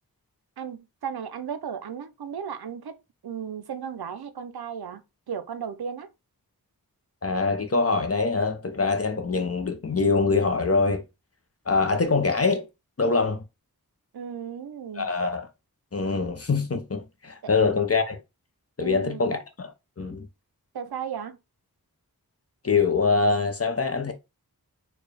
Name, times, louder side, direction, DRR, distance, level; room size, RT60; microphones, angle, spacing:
voice 1, 0.6-3.0 3.2-6.1 14.1-15.1 17.4-17.5 18.8-19.3 20.7-21.4, right 7 dB, 90° right, 0.5 m, -35 dB
voice 2, 7.2-11.0 11.7-12.7 13.0-13.4 15.0-15.5 15.9-18.2 18.8-19.7 20.0-20.3 22.6-24.1, left 4 dB, 40° left, 0.7 m, -24 dB
4.3 x 2.3 x 3.3 m
wide cardioid pair, 55°, 37 cm